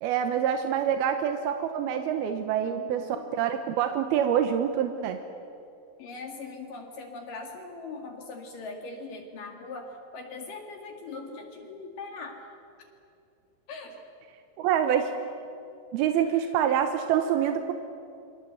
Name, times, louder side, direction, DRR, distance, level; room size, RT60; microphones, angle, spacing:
voice 1, 0.0-5.2 14.6-15.1 15.9-17.7, right 9 dB, 85° right, 7 dB, 2.9 m, -26 dB
voice 2, 2.6-3.2 6.0-12.4 13.7-14.0 16.3-16.4, left 3 dB, 65° left, 3 dB, 3.5 m, -41 dB
28.0 x 23.5 x 8.1 m, 2.6 s
omnidirectional pair, 4.4 m